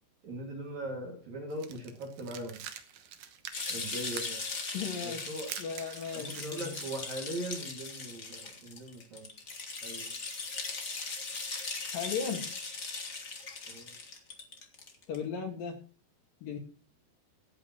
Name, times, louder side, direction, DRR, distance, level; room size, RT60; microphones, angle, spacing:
voice 1, 0.2-2.6 3.7-4.4 5.0-5.5 6.1-9.3 9.8-10.1 13.7-13.9, right 1 dB, 45° right, 0 dB, 3.3 m, -40 dB
sound 1, 1.5-6.8, right 9 dB, 70° right, 1.8 m, -46 dB
sound 2, 3.5-15.1, left 4 dB, 90° left, 0.7 m, -39 dB
voice 2, 4.7-6.7 11.9-12.5 15.1-15.8 16.4-16.6, left 6 dB, 60° left, 2 dB, 3.3 m, -37 dB
23.0 x 8.6 x 3.0 m, 0.37 s
omnidirectional pair, 4.9 m